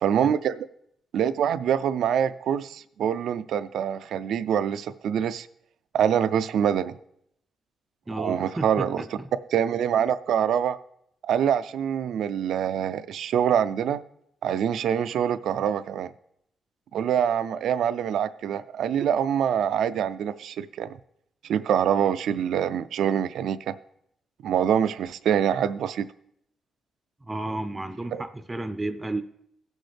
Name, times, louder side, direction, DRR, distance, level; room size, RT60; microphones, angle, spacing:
voice 1, 0.0-0.6 1.1-5.5 5.9-7.0 8.2-9.2 9.5-10.8 11.2-14.0 14.4-16.1 16.9-20.9 21.4-23.7 24.4-26.1 28.1-28.2, right 9 dB, 80° right, 0.3 m, -25 dB
voice 2, 8.1-9.3 27.2-29.2, right 2 dB, 15° right, 0.4 m, -32 dB
17.5 x 6.3 x 3.3 m
cardioid pair, 115°, 0 cm